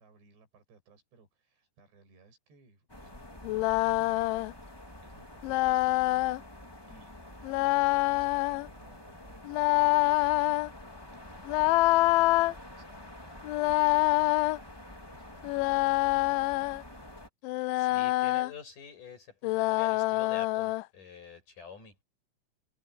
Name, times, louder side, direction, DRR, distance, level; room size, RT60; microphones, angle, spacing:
voice 1, 0.0-4.5 5.0-6.3 6.9-10.4 11.2-16.3, right 3 dB, 65° right, 10.5 m, -61 dB
sound 1, 2.9-17.3, left 1 dB, 20° left, 0.7 m, -48 dB
sound 2, 3.4-4.5 5.4-6.4 7.4-8.7 9.5-10.7 11.5-12.5 13.4-14.6 15.4-16.8 17.4-18.5 19.4-20.8, left 21 dB, 90° left, 3.0 m, -26 dB
voice 2, 17.8-22.0, left 6 dB, 45° left, 9.2 m, -47 dB
omnidirectional pair, 5.3 m